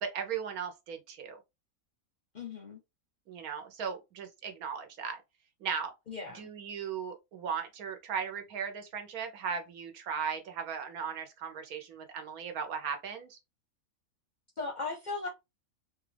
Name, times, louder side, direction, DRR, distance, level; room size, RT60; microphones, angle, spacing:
voice 1, 0.0-1.4 3.3-5.2 5.6-5.9 6.3-13.4, right 6 dB, 85° right, 1.4 m, -37 dB
voice 2, 2.3-2.8 6.1-6.5 14.6-15.3, left 4 dB, 45° left, 0.6 m, -37 dB
4.1 x 2.4 x 3.3 m
omnidirectional pair, 1.5 m